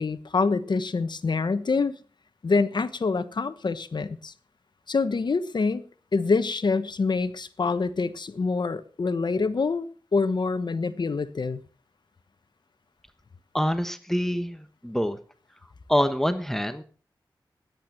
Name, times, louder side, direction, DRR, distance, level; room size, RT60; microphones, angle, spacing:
voice 1, 0.0-1.9 2.4-4.3 4.9-5.8 6.1-11.6, left 4 dB, 60° left, 12 dB, 1.1 m, -26 dB
voice 2, 13.5-15.2 15.9-16.8, equal, 5° left, 9 dB, 1.2 m, -26 dB
17.0 x 10.5 x 4.5 m, 0.41 s
wide cardioid pair, 80°, 8 cm